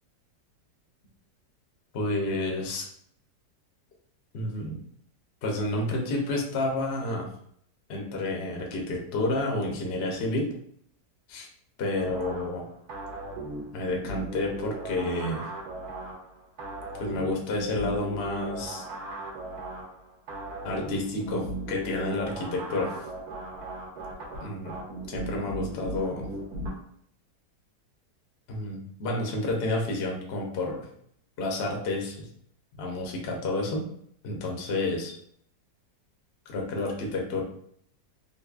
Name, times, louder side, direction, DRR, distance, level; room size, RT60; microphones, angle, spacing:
voice 1, 1.9-2.8 4.3-4.8 5.4-7.3 7.9-10.5 11.3-11.5 11.8-12.6 13.7-15.5 17.0-18.9 20.6-23.0 24.4-24.7 25.1-26.3 28.5-30.9 31.4-32.3 32.7-33.9 34.2-35.1 36.5-37.4, left 2 dB, 55° left, 0 dB, 0.7 m, -30 dB
sound 1, 12.0-26.7, right 2 dB, 65° right, 1.2 m, -37 dB
3.9 x 2.7 x 2.3 m, 0.66 s
omnidirectional pair, 1.9 m